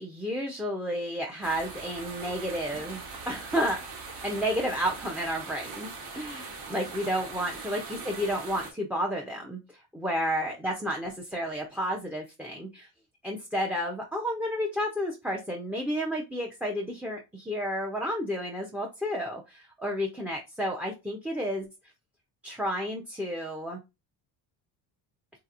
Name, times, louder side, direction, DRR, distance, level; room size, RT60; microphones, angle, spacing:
voice 1, 0.0-5.9 6.1-12.9 13.2-21.7 22.4-23.8, equal, 5° right, 2 dB, 0.4 m, -31 dB
sound 1, 1.4-8.7, right 4 dB, 75° right, 1.3 m, -41 dB
3.3 x 2.8 x 2.4 m, 0.25 s
cardioid pair, 105°, 41 cm